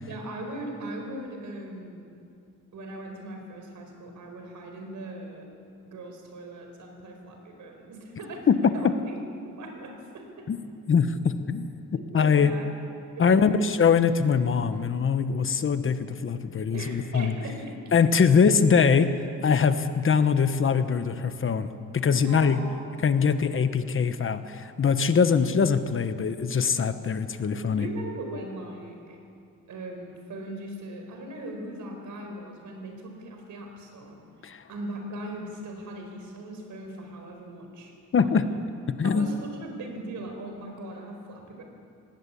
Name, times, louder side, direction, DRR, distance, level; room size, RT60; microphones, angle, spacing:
voice 1, 0.0-2.1 2.7-5.5 5.8-10.4 12.0-12.7 13.1-13.6 16.7-17.8 18.3-18.4 22.3-22.8 27.7-29.2 29.7-34.2 34.7-38.6 39.0-41.6, right 1 dB, 70° right, 3 dB, 4.8 m, -39 dB
voice 2, 10.9-11.7 12.1-12.5 13.2-17.3 17.9-19.1 19.4-21.7 21.9-22.6 23.0-27.9 34.4-34.6 38.1-38.4 38.9-39.3, left 6 dB, 40° left, 10 dB, 1.1 m, -22 dB
19.5 x 19.0 x 8.5 m, 2.5 s
cardioid pair, 135°, 31 cm